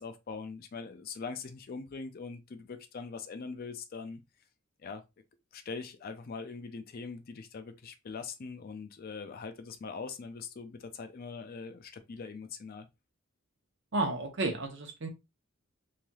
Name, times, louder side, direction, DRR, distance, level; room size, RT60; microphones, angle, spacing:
voice 1, 0.0-4.2 4.8-5.0 5.5-12.9, left 4 dB, 45° left, 0.4 m, -42 dB
voice 2, 13.9-15.1, right 2 dB, 60° right, 0.8 m, -32 dB
3.2 x 2.7 x 2.2 m
head